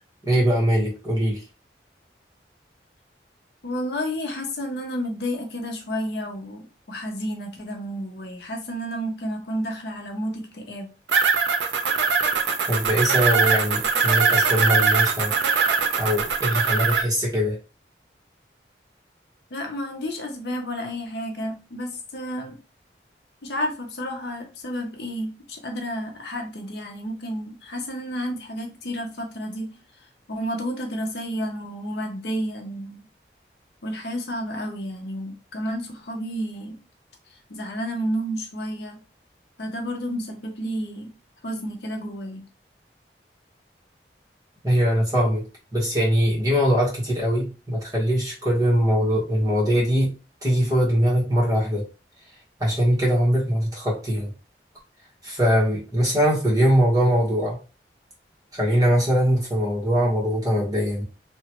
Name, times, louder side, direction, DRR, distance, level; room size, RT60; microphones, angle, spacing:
voice 1, 0.2-1.4 12.7-15.3 16.0-17.6 44.6-45.4 45.7-50.1 50.4-51.8 52.6-54.3 55.2-57.6 58.5-61.0, equal, 20° right, -5 dB, 1.2 m, -22 dB
voice 2, 3.6-10.9 19.5-22.6 23.4-33.0 33.8-36.8 37.3-39.0 39.6-41.1 41.4-42.5, equal, 70° left, 3 dB, 0.6 m, -31 dB
sound 1, 11.1-17.0, right 5 dB, 85° right, 0.5 m, -21 dB
2.9 x 2.2 x 2.9 m, 0.33 s
head